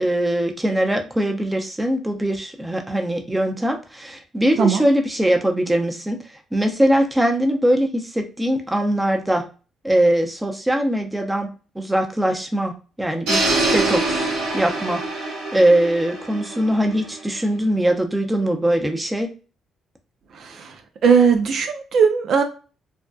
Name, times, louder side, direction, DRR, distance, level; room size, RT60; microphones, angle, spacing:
voice 1, 0.0-9.5 9.8-14.3 14.5-19.3, right 1 dB, 10° right, 4 dB, 0.6 m, -21 dB
sound 1, 13.3-17.3, right 2 dB, 80° right, 0.9 m, -24 dB
voice 2, 20.4-20.7 21.0-22.4, right 6 dB, 65° right, 5 dB, 0.4 m, -18 dB
2.6 x 2.2 x 2.2 m, 0.35 s
supercardioid pair, 60°, 0 cm